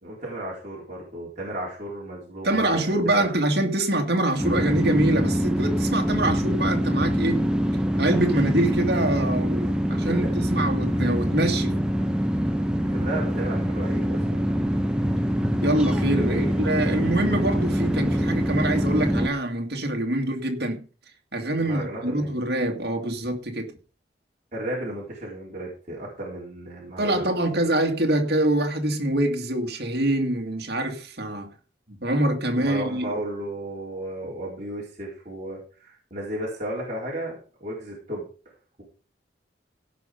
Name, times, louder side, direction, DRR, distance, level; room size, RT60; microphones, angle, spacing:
voice 1, 0.0-3.3 12.9-14.5 15.0-15.2 16.2-16.5 21.6-22.3 24.5-27.3 32.5-38.2, right 1 dB, 40° right, 4.2 m, -34 dB
voice 2, 2.4-7.5 8.0-11.8 15.6-20.9 21.3-23.8 27.0-31.5 31.9-33.1, right 1 dB, 60° right, 2.3 m, -25 dB
sound 1, 4.4-19.3, equal, 5° right, 0.9 m, -24 dB
16.5 x 5.7 x 5.2 m
head